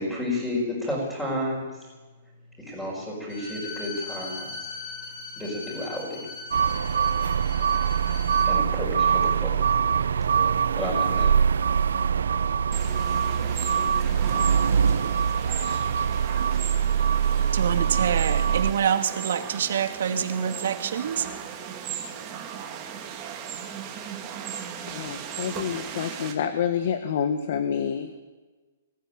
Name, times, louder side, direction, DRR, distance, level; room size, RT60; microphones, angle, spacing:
voice 1, 0.0-1.9 2.6-6.7 8.4-11.4, left 1 dB, 5° left, -6 dB, 5.4 m, -33 dB
Bowed string instrument, 3.3-8.5, left 4 dB, 25° left, 4.6 m, -39 dB
sound 1, 6.5-18.7, right 7 dB, 90° right, 0.6 m, -23 dB
sound 2, 12.7-26.3, right 8 dB, 20° right, 2.6 m, -37 dB
voice 2, 17.5-21.2, right 8 dB, 65° right, 5 dB, 2.6 m, -26 dB
voice 3, 24.9-28.2, left 8 dB, 50° left, 8 dB, 1.5 m, -28 dB
24.0 x 15.0 x 9.0 m, 1.3 s
hypercardioid pair, 170°, 0 cm